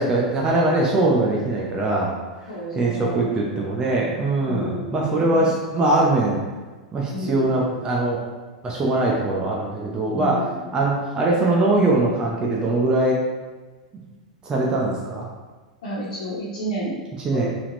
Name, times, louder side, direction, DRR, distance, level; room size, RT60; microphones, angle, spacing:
voice 1, 0.0-2.1 2.8-6.4 6.9-8.2 8.6-10.5 10.7-13.2 14.4-15.3 17.2-17.5, right 2 dB, 20° right, -3 dB, 0.8 m, -21 dB
voice 2, 2.5-3.3 4.4-5.5 7.1-7.5 10.1-10.7 15.8-17.5, equal, 60° left, -9 dB, 1.3 m, -31 dB
4.7 x 3.6 x 3.1 m, 1.3 s
figure-of-eight pair, 95°, 4 cm